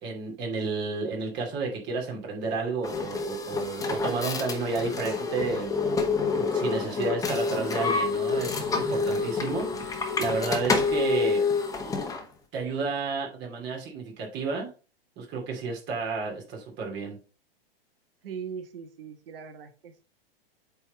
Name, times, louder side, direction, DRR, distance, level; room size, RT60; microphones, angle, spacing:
voice 1, 0.0-5.7 6.3-11.4 12.5-14.7 15.2-17.2, right 4 dB, 35° right, 2.5 m, -31 dB
sound 1, 2.8-12.3, left 4 dB, 10° left, 1.2 m, -28 dB
voice 2, 18.2-20.0, right 6 dB, 70° right, 1.3 m, -40 dB
8.1 x 3.7 x 4.1 m
hypercardioid pair, 110°, 30 cm